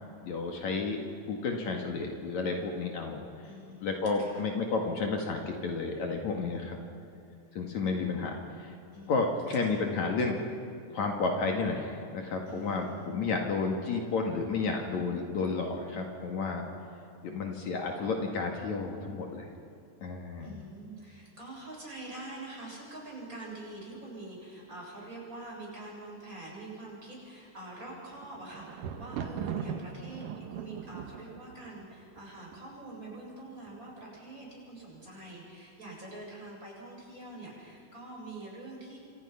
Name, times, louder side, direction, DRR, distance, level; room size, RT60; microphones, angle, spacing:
voice 1, 0.2-1.0 1.3-3.2 3.8-6.8 7.5-8.7 9.1-10.4 10.9-16.6 17.2-19.5 20.0-20.6, left 4 dB, 60° left, 2 dB, 3.1 m, -31 dB
voice 2, 3.4-4.5 8.9-9.7 12.4-13.2 20.4-39.0, right 2 dB, 25° right, -4 dB, 8.1 m, -45 dB
Thunder, 27.8-32.9 33.7-34.2 34.4-34.5, right 7 dB, 80° right, 2.9 m, -40 dB
29.0 x 26.0 x 5.8 m, 2.7 s
omnidirectional pair, 3.7 m